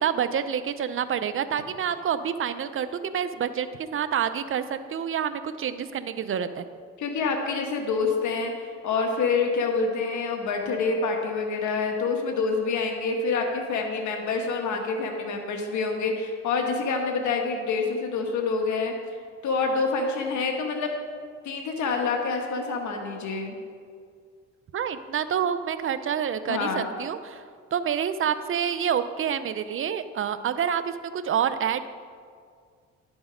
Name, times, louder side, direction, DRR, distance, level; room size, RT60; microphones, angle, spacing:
voice 1, 0.0-6.6 24.7-27.4 27.7-31.9, right 8 dB, 45° right, 11 dB, 0.6 m, -28 dB
voice 2, 7.0-8.5 8.8-18.9 19.4-20.9 21.4-23.6 26.5-26.9, left 4 dB, 75° left, 2 dB, 1.3 m, -27 dB
10.5 x 6.2 x 5.1 m, 2.1 s
cardioid pair, 90°, 30 cm